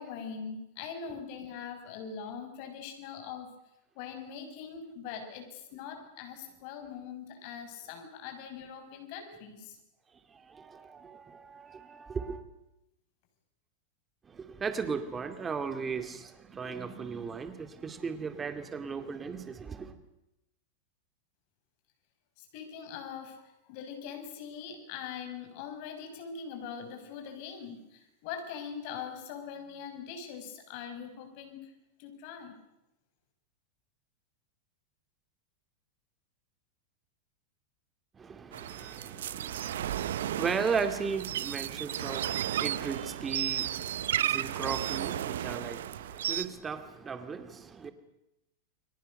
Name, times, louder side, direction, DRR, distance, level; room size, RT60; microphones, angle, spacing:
voice 1, 0.0-3.5 3.9-9.8 22.4-31.7 32.0-32.6, left 7 dB, 50° left, 6.5 m, -42 dB
voice 2, 10.3-12.4 14.3-20.0 38.1-47.9, right 5 dB, 15° right, 2.3 m, -36 dB
sound 1, 38.5-46.4, right 11 dB, 85° right, 1.0 m, -33 dB
30.0 x 22.5 x 6.6 m
supercardioid pair, 155°, 0 cm